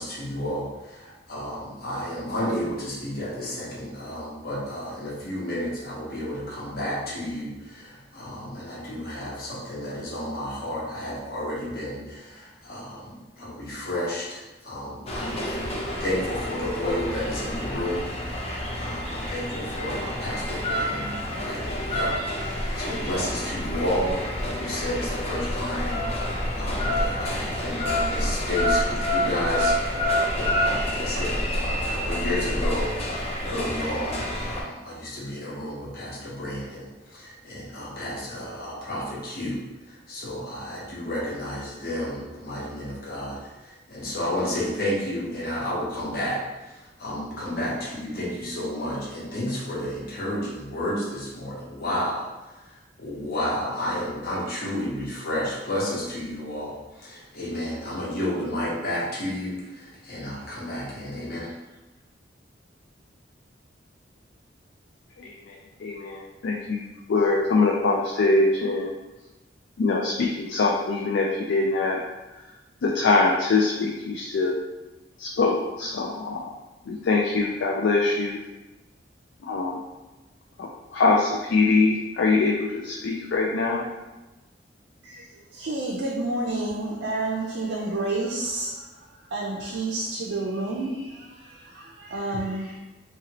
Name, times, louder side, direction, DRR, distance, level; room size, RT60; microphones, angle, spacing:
voice 1, 0.0-15.7 16.0-61.5, left 1 dB, 55° left, -5 dB, 0.9 m, -32 dB
sound 1, 15.1-34.6, equal, 35° left, 0.5 m, -28 dB
voice 2, 65.2-66.8 67.1-68.9 69.8-72.0 72.8-74.5 75.2-76.5 76.9-78.4 79.4-79.7 80.6-83.8, left 3 dB, 90° left, -1 dB, 0.4 m, -23 dB
voice 3, 85.5-89.0 89.3-92.8, right 2 dB, 90° right, -3 dB, 0.5 m, -30 dB
2.9 x 2.8 x 2.9 m, 1.1 s
head